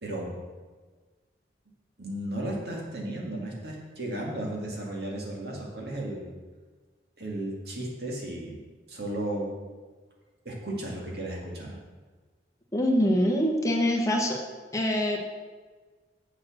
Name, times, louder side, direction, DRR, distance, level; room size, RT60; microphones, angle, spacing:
voice 1, 0.0-0.4 2.0-6.3 7.2-8.6 8.9-9.5 10.4-11.8, right 1 dB, 60° right, -2 dB, 2.3 m, -34 dB
voice 2, 12.7-14.4 14.7-15.2, equal, 20° left, -1 dB, 1.3 m, -24 dB
7.6 x 7.2 x 6.4 m, 1.4 s
head